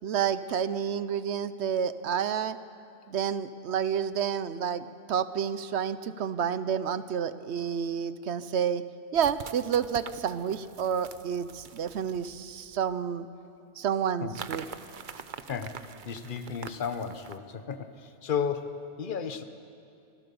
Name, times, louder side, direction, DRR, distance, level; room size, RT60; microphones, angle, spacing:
voice 1, 0.0-2.6 3.1-8.8 9.1-13.3 13.8-14.6, right 8 dB, 75° right, 13 dB, 1.0 m, -29 dB
sound 1, 7.8-7.9 9.1-13.0 14.3-17.4, right 7 dB, 50° right, 0.8 m, -45 dB
voice 2, 15.5-19.4, left 6 dB, 50° left, 9 dB, 1.1 m, -34 dB
26.0 x 15.5 x 7.0 m, 2.6 s
omnidirectional pair, 1.2 m